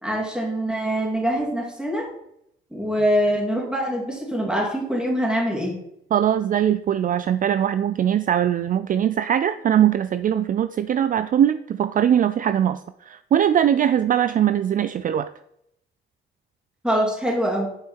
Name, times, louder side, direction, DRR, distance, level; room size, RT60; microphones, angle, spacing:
voice 1, 0.0-2.1 2.7-5.8 16.8-17.7, equal, 5° right, -3 dB, 2.9 m, -24 dB
voice 2, 6.1-15.3, right 10 dB, 45° right, 12 dB, 0.4 m, -21 dB
8.7 x 5.6 x 4.5 m, 0.77 s
cardioid pair, 90°, 20 cm